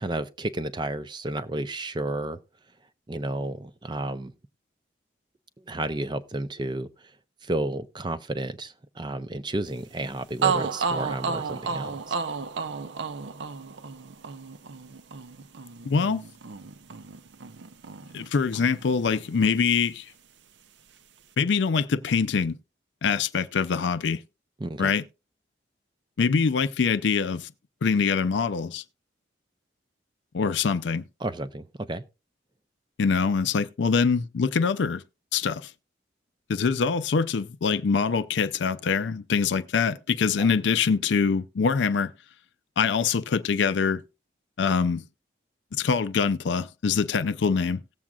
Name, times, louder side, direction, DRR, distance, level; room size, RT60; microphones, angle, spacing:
voice 1, 0.0-2.4 3.1-4.3 5.7-6.9 7.4-12.2 24.6-24.9 31.2-32.0 40.4-40.5, right 2 dB, 25° right, 0.5 m, -32 dB
sound 1, 10.0-10.1 10.4-18.3 18.5-19.7, right 5 dB, 75° right, 0.6 m, -32 dB
voice 2, 15.9-16.2 18.1-20.1 21.4-22.6 23.0-24.2 24.8-25.0 26.2-27.5 27.8-28.8 30.3-31.0 33.0-35.0 35.3-35.7 36.5-42.1 42.8-44.0 44.6-45.0 45.7-47.8, left 5 dB, 75° left, 0.4 m, -24 dB
18.0 x 7.4 x 2.3 m
head